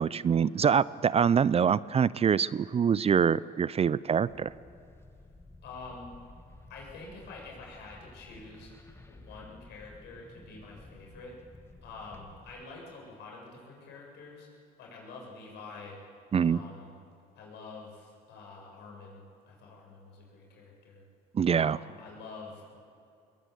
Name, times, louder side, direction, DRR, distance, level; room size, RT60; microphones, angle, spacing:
voice 1, 0.0-4.5 16.3-16.6 21.3-21.8, right 7 dB, 35° right, 19 dB, 0.5 m, -25 dB
sound 1, 4.3-12.6, left 2 dB, 15° left, 1.8 m, -53 dB
voice 2, 5.6-6.2 6.7-8.7 9.1-11.4 11.8-14.5 14.8-16.0 16.4-17.0 17.3-21.0 21.6-22.8, left 3 dB, 75° left, -1 dB, 7.5 m, -47 dB
21.0 x 20.5 x 8.3 m, 2.5 s
supercardioid pair, 75°, 18 cm